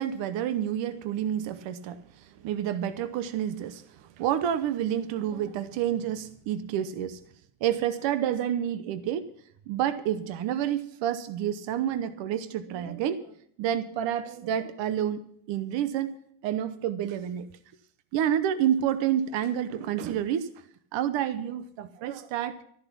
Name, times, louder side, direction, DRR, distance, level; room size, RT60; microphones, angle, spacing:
voice 1, 0.0-7.2 7.6-9.3 9.7-15.2 15.5-16.1 16.4-17.5 18.1-20.5 20.9-22.6, right 10 dB, 60° right, 11 dB, 1.0 m, -29 dB
14.0 x 11.0 x 5.9 m, 0.66 s
cardioid pair, 170°, 50 cm